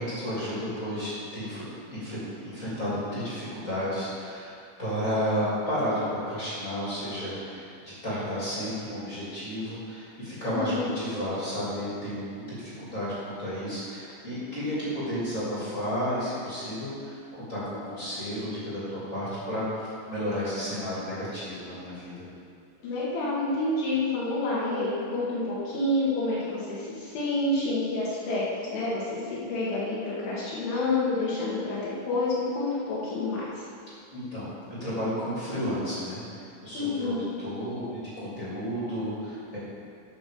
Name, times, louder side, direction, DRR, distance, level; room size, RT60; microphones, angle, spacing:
voice 1, 0.0-1.6 1.9-22.3 34.1-34.5 34.8-39.6, equal, 20° left, -9 dB, 2.8 m, -32 dB
voice 2, 10.5-10.9 22.8-33.4 36.7-37.2, left 2 dB, 80° left, -8 dB, 4.4 m, -28 dB
11.5 x 6.2 x 6.8 m, 2.3 s
omnidirectional pair, 5.5 m